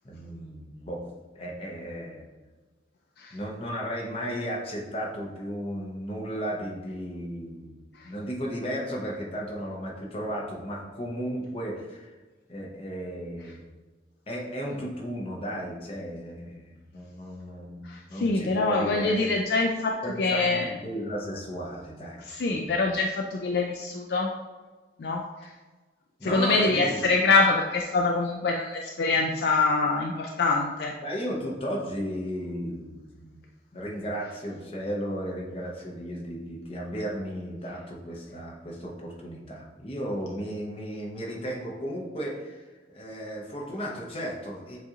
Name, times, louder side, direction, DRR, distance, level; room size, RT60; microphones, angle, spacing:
voice 1, 0.0-1.1 1.3-2.3 3.3-7.8 8.0-12.1 12.5-13.6 14.3-19.3 20.0-22.8 26.2-27.0 29.2-29.3 31.0-33.4 33.7-44.8, equal, 30° left, -2 dB, 0.8 m, -34 dB
voice 2, 17.8-20.7 22.2-24.3 25.0-25.5 26.2-30.9, left 3 dB, 55° left, 0 dB, 0.4 m, -25 dB
7.3 x 2.5 x 2.8 m, 1.3 s
head